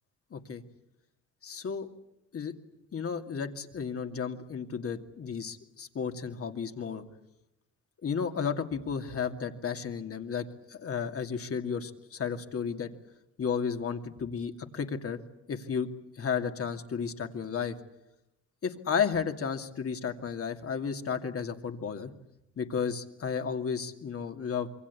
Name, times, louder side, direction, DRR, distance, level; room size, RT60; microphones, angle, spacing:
voice 1, 0.3-0.6 1.4-1.9 2.3-2.5 2.9-7.0 8.0-12.9 13.4-15.2 15.5-15.9 16.1-17.8 18.6-22.1 22.6-24.7, left 6 dB, 50° left, 6 dB, 2.5 m, -33 dB
26.5 x 23.5 x 8.5 m, 0.86 s
cardioid pair, 90°, 30 cm